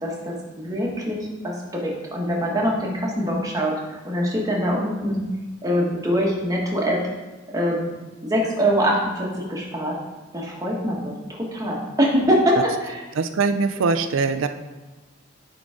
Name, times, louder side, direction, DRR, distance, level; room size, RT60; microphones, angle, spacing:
voice 1, 0.0-3.8 4.0-5.2 5.6-7.0 7.5-7.9 8.2-10.0 10.3-12.6 12.8-13.0, equal, 20° right, -2 dB, 1.3 m, -23 dB
voice 2, 13.2-14.5, right 4 dB, 70° right, 9 dB, 0.4 m, -22 dB
9.9 x 3.9 x 3.6 m, 1.2 s
head